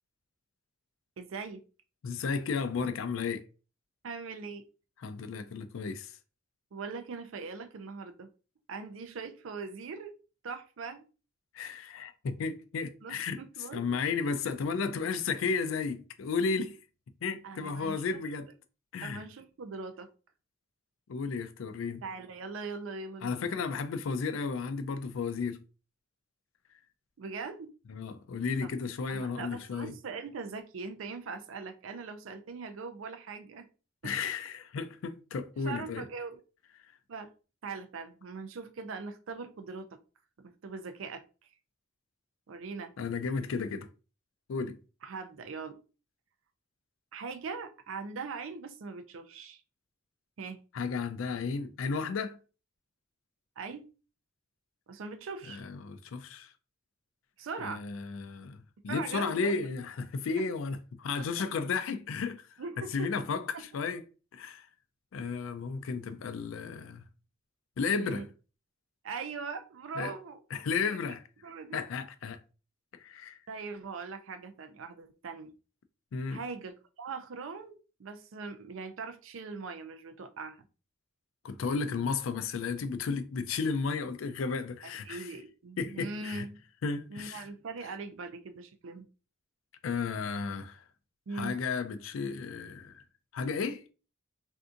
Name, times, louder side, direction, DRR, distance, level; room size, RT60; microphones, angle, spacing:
voice 1, 1.2-1.6 4.0-4.6 6.7-8.3 8.7-10.1 10.4-11.0 13.0-13.8 17.4-18.2 19.0-20.1 22.0-23.4 27.2-27.7 28.6-28.7 29.1-33.7 34.0-34.1 35.6-36.4 37.1-37.3 37.6-39.9 40.4-41.2 42.5-42.9 45.0-45.7 47.1-49.6 50.4-50.6 53.6-53.9 54.9-55.6 57.4-57.8 58.9-59.5 60.4-60.5 62.6-63.1 63.5-63.6 65.2-65.3 68.0-68.2 69.0-70.4 70.9-71.2 71.4-71.8 73.5-75.5 76.3-80.6 84.8-86.6 87.1-89.1 91.3-91.5, right 4 dB, 75° right, 0.4 m, -41 dB
voice 2, 2.0-3.5 5.0-6.1 11.5-13.4 13.7-16.8 17.2-18.5 18.9-19.2 21.1-22.0 23.2-25.6 27.9-29.9 34.0-36.1 43.0-43.9 44.5-44.8 50.7-52.4 55.5-56.5 57.6-62.5 62.8-64.0 64.3-64.7 65.1-67.0 67.8-68.3 70.0-70.1 70.5-71.2 71.7-72.4 73.0-73.4 76.1-76.4 81.4-85.4 85.8-86.4 86.8-87.5 89.8-90.8 91.3-93.0 93.3-93.8, left 5 dB, 75° left, 0.4 m, -33 dB
3.5 x 2.7 x 2.4 m
head